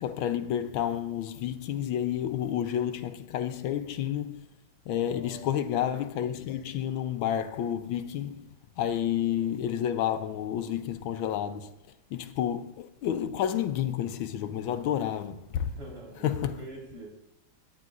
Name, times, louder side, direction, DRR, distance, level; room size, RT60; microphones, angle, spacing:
voice 1, 0.0-4.5 4.9-8.5 8.8-11.7 12.1-15.7 16.2-16.6, left 10 dB, 80° left, 1.4 m, -30 dB
voice 2, 4.9-5.4 15.6-17.1, right 2 dB, 50° right, 4.4 m, -45 dB
17.0 x 9.6 x 2.4 m
omnidirectional pair, 2.2 m